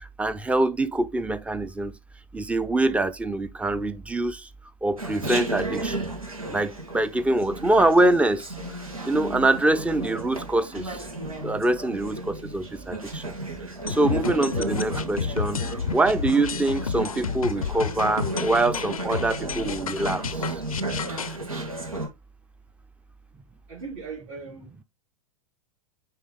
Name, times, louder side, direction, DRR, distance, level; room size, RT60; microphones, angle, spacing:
voice 1, 0.2-1.9 2.3-4.4 4.8-6.1 6.5-8.5 9.1-10.8 11.4-13.2 13.9-15.6 15.9-20.2, right 2 dB, 5° right, 0.6 m, -24 dB
Chatter, 5.0-22.1, right 2 dB, 90° right, 2.1 m, -33 dB
sound 1, 13.9-21.4, left 6 dB, 85° left, 0.6 m, -31 dB
voice 2, 23.7-24.8, right 5 dB, 60° right, 3.2 m, -39 dB
9.3 x 3.5 x 3.3 m
hypercardioid pair, 100°, 18 cm